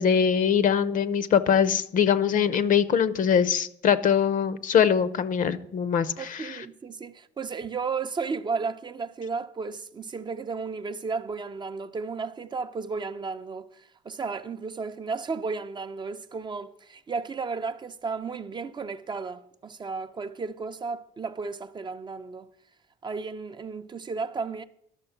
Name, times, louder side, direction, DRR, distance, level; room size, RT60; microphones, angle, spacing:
voice 1, 0.0-6.6, left 7 dB, 50° left, 0.7 m, -23 dB
voice 2, 6.2-22.5 23.0-24.6, right 4 dB, 25° right, 0.5 m, -33 dB
11.5 x 6.2 x 5.8 m
cardioid pair, 110°, 17 cm